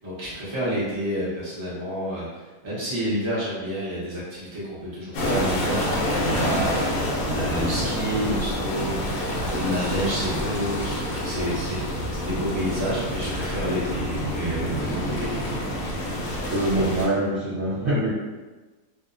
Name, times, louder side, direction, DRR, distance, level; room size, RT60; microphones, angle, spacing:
voice 1, 0.0-15.3, equal, 45° right, -9 dB, 0.3 m, -29 dB
sound 1, 5.1-17.1, left 1 dB, 70° left, 1.0 m, -27 dB
voice 2, 16.5-18.1, right 1 dB, 65° right, -8 dB, 1.0 m, -24 dB
2.7 x 2.0 x 2.4 m, 1.2 s
omnidirectional pair, 1.7 m